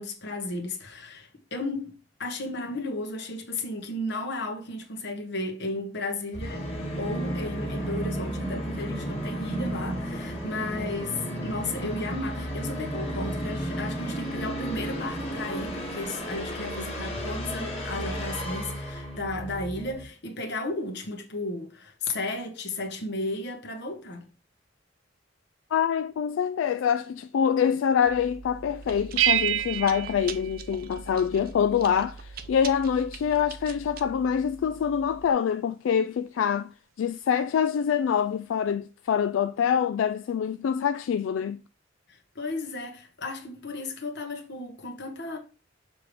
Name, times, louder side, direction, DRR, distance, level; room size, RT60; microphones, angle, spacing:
voice 1, 0.0-6.7 6.9-24.2 42.1-45.4, left 2 dB, 60° left, 1.4 m, -34 dB
Musical instrument, 6.3-20.0, equal, 30° left, 1.8 m, -33 dB
voice 2, 25.7-36.7 37.0-41.6, left 7 dB, 80° left, 0.3 m, -25 dB
Chewing mastication, 28.0-35.3, right 5 dB, 50° right, 0.6 m, -43 dB
sound 1, 29.2-31.4, right 11 dB, 90° right, 0.4 m, -27 dB
6.8 x 3.4 x 5.1 m
head